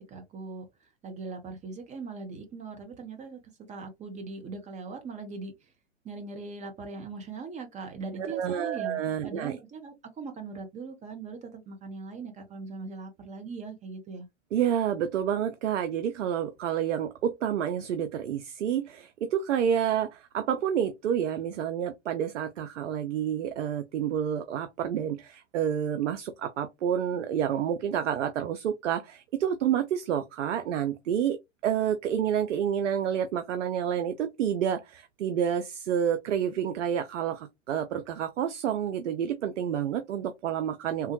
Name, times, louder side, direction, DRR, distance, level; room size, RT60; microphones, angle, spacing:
voice 1, 0.1-3.4 3.7-5.7 6.0-14.3, right 4 dB, 20° right, 0.6 m, -40 dB
voice 2, 8.2-9.6 14.5-41.1, right 9 dB, 75° right, 0.6 m, -29 dB
3.4 x 2.2 x 2.8 m
hypercardioid pair, 110°, 37 cm